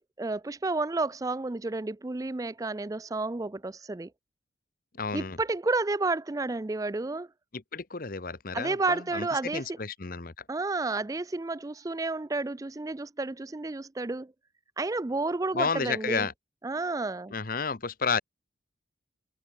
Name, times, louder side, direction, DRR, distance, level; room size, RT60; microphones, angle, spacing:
voice 1, 0.0-4.1 5.1-7.3 8.5-9.8 10.5-14.3 14.8-16.3 16.6-17.3, right 3 dB, 20° right, 0.4 m, -31 dB
voice 2, 5.0-5.4 7.5-9.3 9.5-10.3 15.5-16.3 17.3-18.2, left 5 dB, 50° left, 1.0 m, -31 dB
head